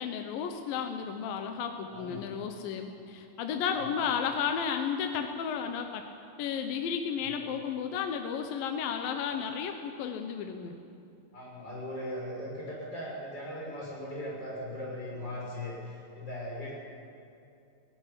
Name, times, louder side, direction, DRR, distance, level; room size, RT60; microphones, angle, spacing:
voice 1, 0.0-6.1 6.4-10.8, left 7 dB, 75° left, 5 dB, 2.7 m, -33 dB
voice 2, 1.9-2.3 3.7-3.9 7.1-7.5 11.3-16.8, left 1 dB, 30° left, -4 dB, 7.0 m, -39 dB
17.5 x 17.5 x 10.0 m, 2.5 s
omnidirectional pair, 4.2 m